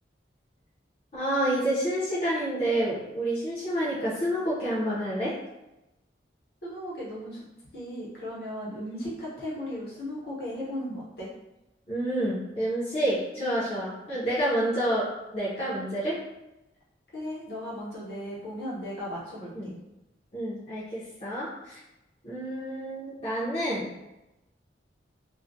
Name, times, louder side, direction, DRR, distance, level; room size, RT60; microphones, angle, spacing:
voice 1, 1.1-5.4 11.9-16.2 19.5-19.7 20.3-21.8 22.2-23.9, right 1 dB, 35° left, -10 dB, 0.6 m, -28 dB
voice 2, 6.6-7.4 7.7-11.3 17.1-19.7, equal, 60° left, -6 dB, 0.9 m, -36 dB
2.3 x 2.1 x 2.6 m, 0.96 s
head